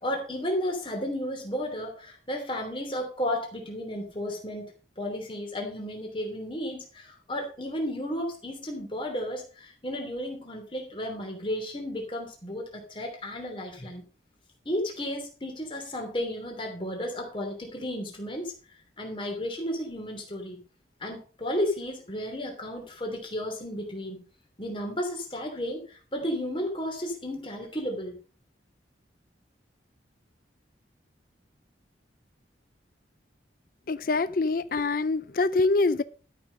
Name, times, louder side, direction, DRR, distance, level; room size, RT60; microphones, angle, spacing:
voice 1, 0.0-4.7 5.0-14.0 14.6-18.5 19.0-20.6 21.0-24.2 24.6-28.2, equal, 25° left, 2 dB, 3.0 m, -33 dB
voice 2, 33.9-36.0, left 3 dB, 50° left, 15 dB, 0.5 m, -25 dB
12.5 x 6.1 x 5.3 m, 0.38 s
head